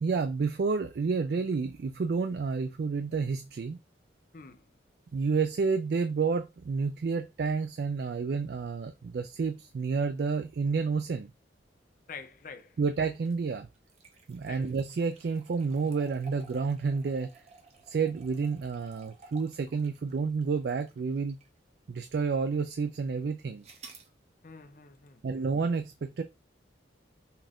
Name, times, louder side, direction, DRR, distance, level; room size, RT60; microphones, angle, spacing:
voice 1, 0.0-3.8 5.1-11.3 12.8-13.7 14.3-17.3 17.9-21.4 21.9-23.6 25.2-26.2, right 5 dB, 60° right, 0.3 m, -30 dB
voice 2, 4.3-4.7 12.1-12.8 14.4-14.7 24.4-25.2, left 5 dB, 45° left, 0.5 m, -46 dB
sound 1, 13.1-21.6 22.1-22.2 23.6-24.1, right 4 dB, 35° right, 0.8 m, -54 dB
5.6 x 2.5 x 3.5 m
head